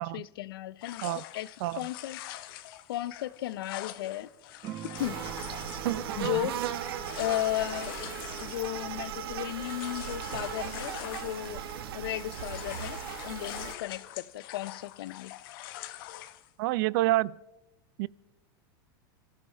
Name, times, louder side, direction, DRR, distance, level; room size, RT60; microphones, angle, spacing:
voice 1, 0.0-1.1 1.3-2.2 2.9-4.3 5.0-5.2 6.2-6.5 7.2-8.0 8.4-11.6 11.9-13.0 13.2-15.3, left 14 dB, 85° left, 0.6 m, -35 dB
sound 1, 0.8-11.9 12.2-16.5, left 14 dB, 70° left, 0.9 m, -44 dB
sound 2, 4.6-9.5, right 10 dB, 35° right, 0.7 m, -47 dB
sound 3, 4.9-13.7, right 9 dB, 85° right, 1.3 m, -37 dB
voice 2, 16.6-17.4 18.0-18.1, right 17 dB, 65° right, 0.4 m, -28 dB
25.5 x 15.0 x 3.4 m
supercardioid pair, 135°, 12 cm